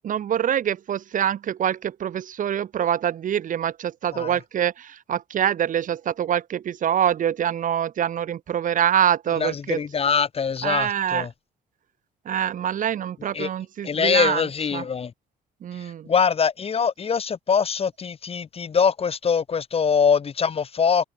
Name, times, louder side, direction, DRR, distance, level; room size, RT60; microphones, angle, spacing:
voice 1, 0.0-9.8 10.6-11.3 12.3-14.4 14.7-14.8 15.6-16.1, right 9 dB, 50° right, 2.4 m, -25 dB
voice 2, 9.4-11.3 13.3-13.5 13.8-15.1 15.7-21.0, left 6 dB, 35° left, 4.5 m, -23 dB
cardioid pair, 110°, 17 cm